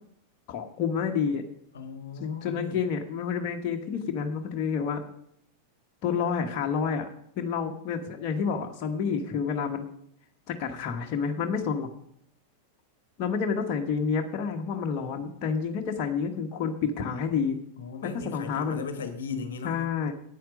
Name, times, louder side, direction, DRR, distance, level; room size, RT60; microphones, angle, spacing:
voice 1, 0.5-1.4 2.2-5.0 6.0-7.1 7.4-9.9 10.5-11.9 13.2-17.6 18.0-18.8 19.6-20.1, left 6 dB, 40° left, 3 dB, 1.2 m, -29 dB
voice 2, 1.7-2.8 17.8-19.8, left 5 dB, 65° left, 8 dB, 1.2 m, -37 dB
9.2 x 8.5 x 5.2 m, 0.70 s
figure-of-eight pair, 90°, 0 cm